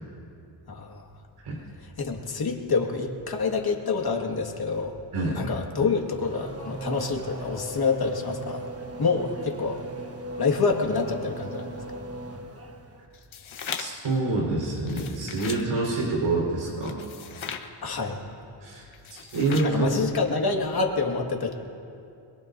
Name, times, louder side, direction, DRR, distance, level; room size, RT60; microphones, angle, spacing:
voice 1, 0.7-1.0 1.8-5.0 5.4-8.7 9.0-9.8 10.4-11.8 17.8-18.2 19.6-21.5, left 4 dB, 45° left, 2 dB, 2.0 m, -27 dB
Race car auto racing / Accelerating revving vroom, 5.8-13.1, right 1 dB, 30° right, 1.2 m, -38 dB
sound 1, 13.1-14.1 14.8-15.7 16.8-17.7 18.9-19.8, left 7 dB, 70° left, 1.3 m, -38 dB
voice 2, 13.8-17.0 18.6-18.8 19.1-20.0, right 2 dB, 85° right, -2 dB, 4.6 m, -26 dB
23.5 x 22.0 x 2.7 m, 2.6 s
cardioid pair, 85°, 49 cm